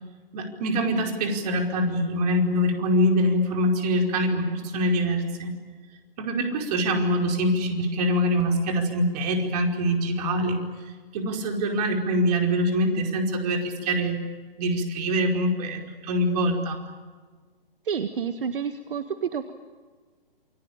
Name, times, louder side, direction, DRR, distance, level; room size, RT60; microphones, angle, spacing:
voice 1, 0.3-5.6 6.2-10.6 11.1-14.2 14.6-16.8, equal, 45° right, 3 dB, 5.0 m, -24 dB
voice 2, 17.8-19.5, right 7 dB, 65° right, 9 dB, 1.7 m, -29 dB
28.5 x 22.0 x 8.7 m, 1.4 s
hypercardioid pair, 130°, 29 cm